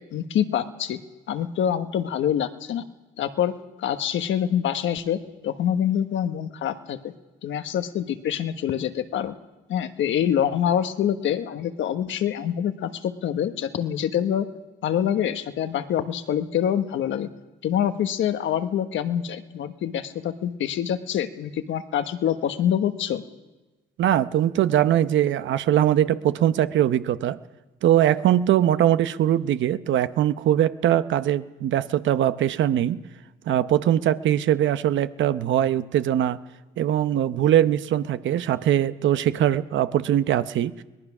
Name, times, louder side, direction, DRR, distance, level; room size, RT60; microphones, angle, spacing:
voice 1, 0.1-1.0 1.3-2.8 3.2-3.5 3.8-7.1 7.4-9.3 9.7-14.5 14.8-17.3 17.6-23.2, left 9 dB, 75° left, 9 dB, 1.2 m, -25 dB
voice 2, 24.0-27.4 27.8-33.0 33.5-36.4 36.8-40.7, right 11 dB, 75° right, 13 dB, 0.8 m, -21 dB
23.0 x 19.0 x 6.1 m, 1.1 s
cardioid pair, 90°, 20 cm